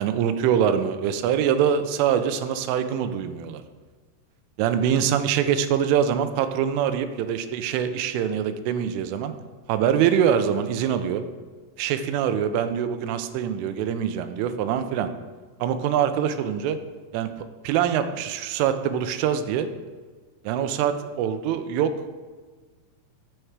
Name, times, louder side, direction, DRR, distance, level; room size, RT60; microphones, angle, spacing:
voice 1, 0.0-3.6 4.6-9.3 9.7-11.2 11.8-15.1 15.6-16.8 17.1-19.7 20.4-21.9, right 8 dB, 85° right, 10 dB, 3.1 m, -24 dB
9.8 x 7.7 x 4.6 m, 1.4 s
omnidirectional pair, 5.7 m